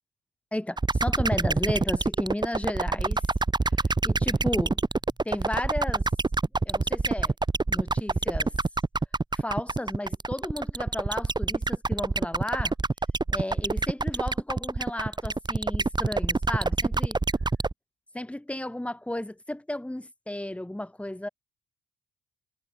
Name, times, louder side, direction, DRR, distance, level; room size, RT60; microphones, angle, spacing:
voice 1, 0.5-3.2 4.0-4.8 5.2-6.1 6.6-7.3 7.7-8.5 9.3-12.7 13.3-17.2 18.1-21.3, left 1 dB, 5° left, 4.4 m, -33 dB
sound 1, 0.8-17.7, right 3 dB, 20° right, 4.0 m, -25 dB
cardioid pair, 90°, 20 cm